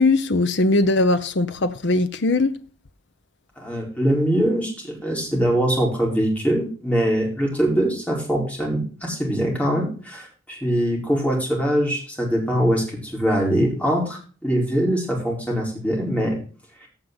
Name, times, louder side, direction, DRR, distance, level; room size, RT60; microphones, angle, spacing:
voice 1, 0.0-2.6, left 2 dB, 65° left, 0.8 m, -20 dB
voice 2, 3.6-16.4 16.8-16.9, equal, 10° left, 4.8 m, -23 dB
16.0 x 6.6 x 4.0 m
head